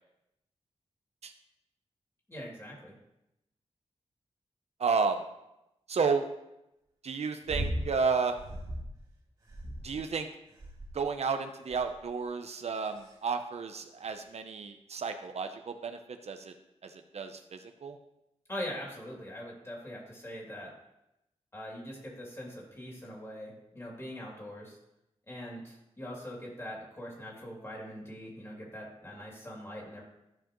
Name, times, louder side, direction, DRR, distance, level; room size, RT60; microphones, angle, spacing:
voice 1, 2.3-2.9 18.5-20.7 21.5-24.8 25.3-30.0, equal, 25° left, -3 dB, 2.6 m, -42 dB
voice 2, 4.8-5.2 5.9-6.3 7.0-8.4 9.8-10.3 10.9-16.5 16.8-18.0, right 5 dB, 70° right, 6 dB, 0.6 m, -32 dB
sound 1, 7.5-7.9 8.4-8.9 9.5-10.1 10.6-11.1 11.7-12.0 12.7-13.1 14.1-14.2, right 1 dB, 35° right, 2.3 m, -37 dB
13.5 x 4.9 x 3.0 m, 0.88 s
wide cardioid pair, 110°, 11 cm